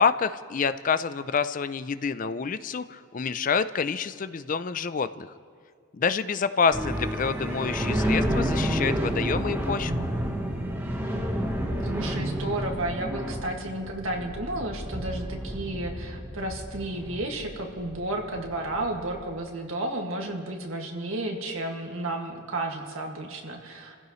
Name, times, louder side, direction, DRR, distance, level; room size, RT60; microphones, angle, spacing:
voice 1, 0.0-5.3 5.9-10.1, left 5 dB, 40° left, 13 dB, 0.4 m, -27 dB
sound 1, 6.7-19.2, equal, 10° right, 1.2 m, -30 dB
voice 2, 11.8-24.0, right 1 dB, 85° right, 1 dB, 2.0 m, -32 dB
28.5 x 15.5 x 3.1 m, 2.1 s
head